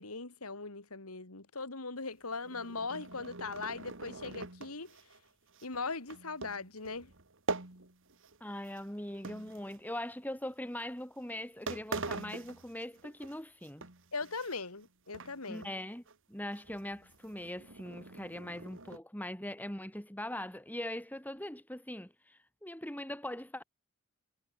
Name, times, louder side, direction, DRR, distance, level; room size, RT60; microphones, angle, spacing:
voice 1, 0.0-5.0 5.6-7.1 14.1-15.7, left 4 dB, 85° left, 2.9 m, -40 dB
sound 1, 2.3-8.4 8.6-10.1 10.8-11.0 11.4-11.5 11.7-13.3 13.6-14.9 15.1-15.7 16.1-16.2 16.5-19.0, right 3 dB, 60° right, 3.2 m, -44 dB
voice 2, 8.4-13.9 15.5-16.0 16.3-23.6, left 1 dB, 10° left, 3.5 m, -41 dB
head